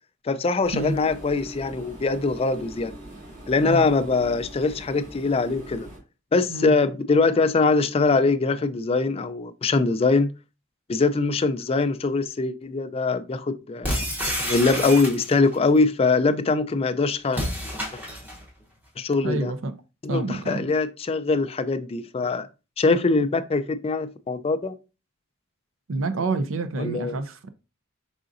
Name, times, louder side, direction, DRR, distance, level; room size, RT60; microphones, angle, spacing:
voice 1, 0.2-2.9 3.5-5.9 6.3-10.3 10.9-13.9 14.4-17.4 19.0-19.5 20.0-22.5 22.8-24.7 26.8-27.2, left 3 dB, 30° left, 0.4 m, -22 dB
sound 1, 0.6-6.0, right 1 dB, 40° right, 1.8 m, -42 dB
sound 2, 13.8-15.6 17.3-18.4, equal, 10° right, 0.9 m, -29 dB
voice 2, 19.2-19.7 20.1-20.7 25.9-27.5, right 2 dB, 70° right, 0.5 m, -28 dB
4.9 x 3.8 x 2.5 m
head